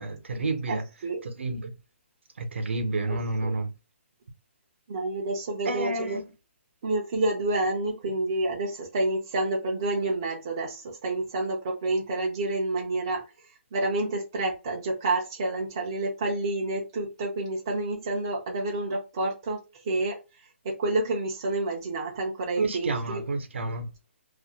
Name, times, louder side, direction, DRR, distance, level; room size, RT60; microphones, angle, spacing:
voice 1, 0.0-0.8 1.2-1.7 2.4-3.7 5.6-6.2 22.6-23.9, right 2 dB, 65° right, 0.7 m, -30 dB
voice 2, 0.7-1.2 3.1-3.5 4.9-6.2 6.8-13.2 13.7-20.2 20.6-23.2, right 2 dB, 20° right, 0.4 m, -29 dB
2.4 x 2.1 x 2.7 m
hypercardioid pair, 180°, 7 cm